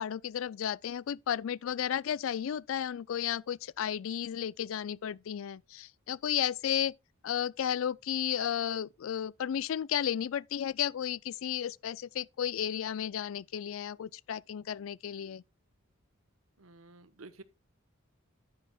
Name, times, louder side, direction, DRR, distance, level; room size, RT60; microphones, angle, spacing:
voice 1, 0.0-6.9 7.2-15.4, left 9 dB, 70° left, 0.4 m, -33 dB
voice 2, 16.6-17.4, right 3 dB, 85° right, 1.0 m, -51 dB
9.8 x 9.5 x 2.3 m
head